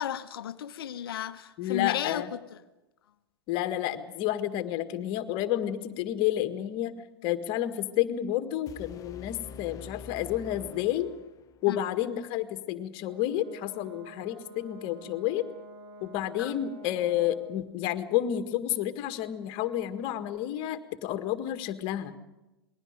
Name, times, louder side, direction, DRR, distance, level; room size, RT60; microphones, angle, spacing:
voice 1, 0.0-2.6 11.7-11.8 16.4-16.5, left 10 dB, 65° left, 1.0 m, -34 dB
voice 2, 1.6-2.3 3.5-6.9 7.2-11.1 11.6-15.4 16.0-22.1, left 12 dB, 40° left, 1.7 m, -30 dB
sound 1, 8.7-11.6, left 6 dB, 25° left, 0.7 m, -46 dB
Brass instrument, 13.0-17.5, right 1 dB, 45° right, 3.1 m, -48 dB
28.0 x 20.5 x 5.2 m
figure-of-eight pair, 105°, 13 cm